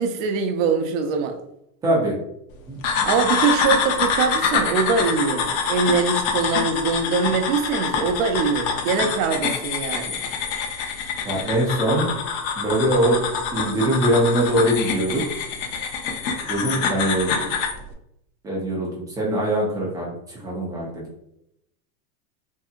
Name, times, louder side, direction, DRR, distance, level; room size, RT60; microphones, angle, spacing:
voice 1, 0.0-1.4 2.9-10.2, right 5 dB, 65° right, 7 dB, 0.5 m, -23 dB
voice 2, 1.8-2.1 2.7-2.8 11.2-12.1 12.6-13.2 13.5-15.2 16.5-17.5 18.4-20.1 20.4-21.0, right 1 dB, 10° right, -3 dB, 0.3 m, -22 dB
sound 1, 2.8-17.8, left 6 dB, 55° left, 0.7 m, -25 dB
2.7 x 2.7 x 2.4 m, 0.78 s
supercardioid pair, 135°, 45 cm